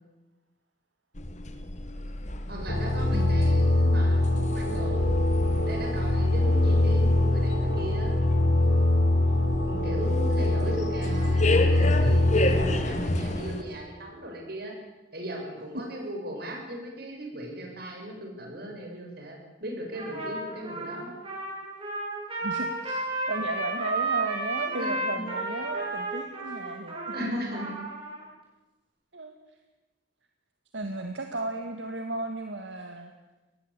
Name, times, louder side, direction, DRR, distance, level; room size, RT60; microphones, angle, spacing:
sound 1, 1.1-13.6, left 1 dB, 40° left, 2.1 m, -32 dB
voice 1, 2.5-5.2 5.7-8.1 9.5-14.7 15.1-21.1 24.8-25.2 27.1-27.7, right 1 dB, 60° right, 2 dB, 6.9 m, -38 dB
sound 2, 2.7-12.8, left 1 dB, 80° left, 5.8 m, -23 dB
voice 2, 3.1-3.5 22.4-23.0 23.3-26.9 27.2-27.6 29.1-29.3 30.7-33.1, right 2 dB, 80° right, 5 dB, 2.0 m, -34 dB
Trumpet, 19.9-28.2, right 3 dB, 30° right, 7.7 m, -32 dB
23.0 x 19.5 x 8.6 m, 1.1 s
head